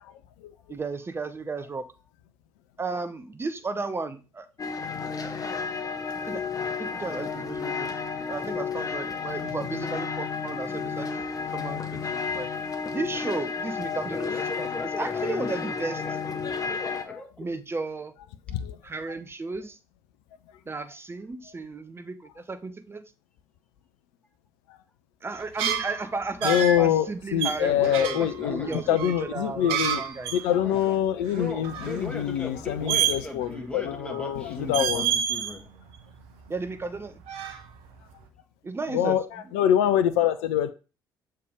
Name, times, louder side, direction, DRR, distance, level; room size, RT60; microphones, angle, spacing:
voice 1, 0.7-1.9 2.8-4.5 6.3-6.4 6.8-7.9 8.3-11.1 11.5-12.5 12.9-14.3 14.6-14.7 15.0-16.0 17.4-18.1 18.8-19.8 20.7-23.0 25.2-30.3 36.5-37.2 38.6-39.4, right 3 dB, 25° right, 10 dB, 0.8 m, -34 dB
sound 1, 4.6-17.0, left 5 dB, 35° left, 1.0 m, -32 dB
voice 2, 14.0-17.5 27.5-29.2 30.6-30.9 31.2-35.7, left 2 dB, 10° left, 3 dB, 1.6 m, -38 dB
sound 2, 25.4-26.9 27.4-30.5 30.7-30.8 31.2-32.0 32.9-33.6 33.9-34.4 34.7-35.5 35.9-37.0 37.2-38.0, right 8 dB, 65° right, 0.8 m, -29 dB
voice 3, 26.4-30.0 30.3-35.1 38.9-40.7, left 10 dB, 70° left, 11 dB, 0.5 m, -25 dB
6.7 x 3.3 x 5.0 m, 0.32 s
figure-of-eight pair, 50°, 10 cm